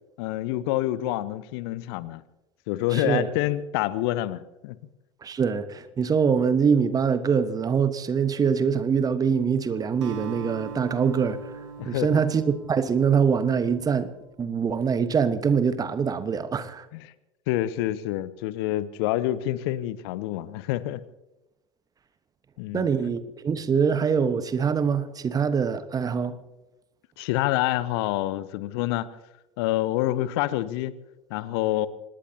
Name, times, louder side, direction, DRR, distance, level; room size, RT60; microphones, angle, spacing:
voice 1, 0.2-2.2 2.7-4.8 11.8-12.2 16.9-17.1 17.5-21.0 22.6-22.9 27.2-29.1 29.6-30.9 31.3-31.9, left 15 dB, 55° left, 0.8 m, -27 dB
voice 2, 2.9-3.3 5.2-16.9 22.7-26.4, right 6 dB, 25° right, 1.2 m, -24 dB
Acoustic guitar, 10.0-14.5, right 7 dB, 65° right, 1.6 m, -41 dB
25.5 x 20.0 x 2.8 m
figure-of-eight pair, 75°, 16 cm